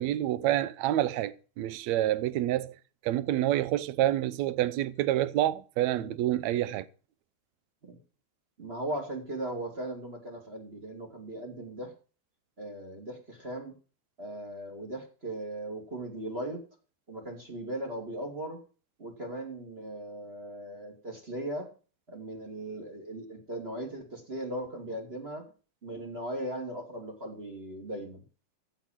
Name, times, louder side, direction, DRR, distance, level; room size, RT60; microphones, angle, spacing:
voice 1, 0.0-2.7 3.0-6.9, right 13 dB, 75° right, 1.8 m, -28 dB
voice 2, 8.6-11.9 12.6-13.8 14.2-16.6 17.1-18.6 19.0-21.7 22.1-25.4 25.8-28.2, right 1 dB, 20° right, 2.5 m, -38 dB
14.5 x 6.0 x 7.3 m
omnidirectional pair, 3.5 m